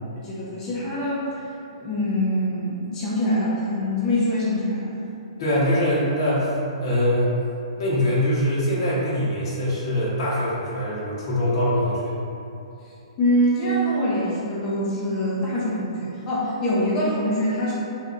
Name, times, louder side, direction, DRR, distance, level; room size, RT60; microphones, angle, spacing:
voice 1, 0.2-4.9 13.2-17.7, equal, 20° left, -8 dB, 0.8 m, -24 dB
voice 2, 5.4-6.5 6.8-7.4 7.8-12.1, equal, 45° left, -7 dB, 1.0 m, -23 dB
2.7 x 2.3 x 3.8 m, 2.7 s
hypercardioid pair, 150°, 3 cm